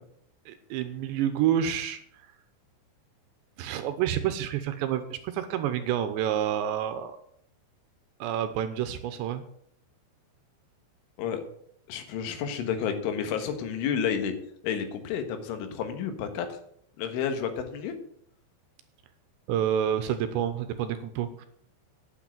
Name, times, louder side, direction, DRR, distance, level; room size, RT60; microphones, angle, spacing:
voice 1, 0.5-2.0 3.6-7.1 8.2-9.4 19.5-21.5, right 10 dB, 80° right, 10 dB, 2.8 m, -28 dB
voice 2, 11.9-14.4 14.6-16.6 17.0-17.9, left 7 dB, 80° left, 8 dB, 3.8 m, -30 dB
9.0 x 8.7 x 8.9 m, 0.69 s
omnidirectional pair, 5.6 m